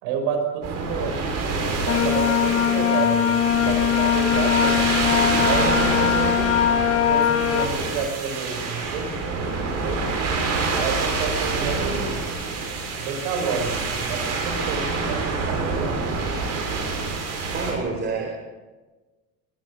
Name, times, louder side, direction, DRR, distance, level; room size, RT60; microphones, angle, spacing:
voice 1, 0.0-6.6 7.1-10.0 10.7-12.2 13.0-16.0, right 5 dB, 85° right, 5 dB, 6.0 m, -30 dB
sound 1, 0.6-17.7, right 4 dB, 45° right, 7.4 m, -27 dB
sound 2, 1.9-7.7, left 10 dB, 40° left, 1.4 m, -21 dB
voice 2, 17.5-18.3, right 4 dB, 25° right, 1 dB, 4.0 m, -27 dB
21.5 x 20.5 x 6.4 m, 1.2 s
cardioid pair, 170°, 36 cm